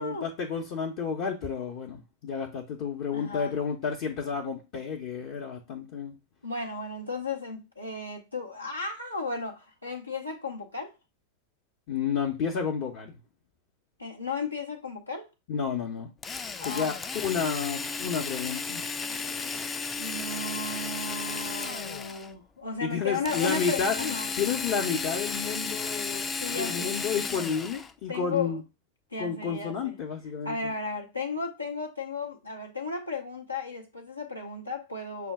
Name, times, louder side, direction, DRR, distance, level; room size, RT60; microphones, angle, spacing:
voice 1, 0.0-6.2 11.9-13.2 15.5-16.1 16.6-18.9 22.8-28.6 29.2-30.7, left 6 dB, 45° left, 0.7 m, -31 dB
voice 2, 3.1-3.6 6.4-10.9 14.0-15.3 16.6-16.9 19.0-19.7 20.0-24.3 26.4-26.9 28.1-28.6 29.1-30.0 30.4-35.3, left 3 dB, 85° left, 0.6 m, -35 dB
Drill, 16.2-22.3 23.3-27.9, left 4 dB, 20° left, 0.3 m, -34 dB
5.9 x 2.2 x 3.5 m
figure-of-eight pair, 90°, 0 cm